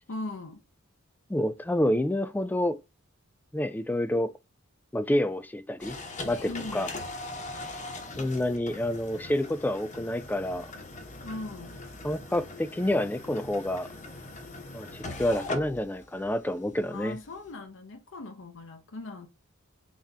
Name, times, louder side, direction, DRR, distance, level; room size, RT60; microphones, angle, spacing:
voice 1, 0.1-0.6 6.5-6.9 11.2-11.8 16.9-19.3, left 2 dB, 65° left, 0.7 m, -39 dB
voice 2, 1.3-2.8 3.5-4.3 4.9-6.0 6.3-6.9 8.2-10.7 12.0-13.9 14.7-17.2, left 1 dB, 10° left, 0.3 m, -28 dB
sound 1, 5.8-17.5, left 2 dB, 35° left, 1.0 m, -41 dB
4.2 x 3.6 x 3.3 m
head